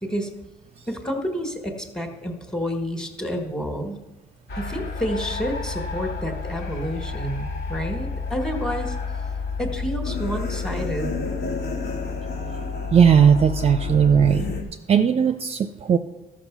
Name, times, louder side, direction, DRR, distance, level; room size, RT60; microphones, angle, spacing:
voice 1, 0.0-0.3 0.9-4.0 4.6-9.0 9.6-11.1, equal, 5° left, 5 dB, 1.6 m, -29 dB
sound 1, 4.5-14.6, left 4 dB, 70° left, 2.2 m, -30 dB
voice 2, 12.9-14.5 14.9-16.0, right 7 dB, 35° right, 8 dB, 0.6 m, -17 dB
13.0 x 5.9 x 6.1 m, 1.1 s
cardioid pair, 110°, 17 cm